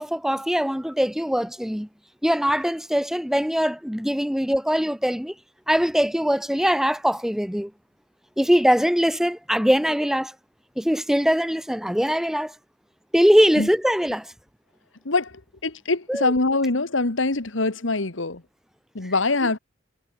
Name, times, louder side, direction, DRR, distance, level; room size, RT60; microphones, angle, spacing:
voice 1, 0.0-1.9 2.2-5.3 5.7-7.7 8.4-10.3 10.8-12.5 13.1-14.3 16.1-16.3, equal, ahead, 1.5 m, -22 dB
voice 2, 15.0-18.4 18.9-19.6, left 3 dB, 70° left, 1.8 m, -24 dB
head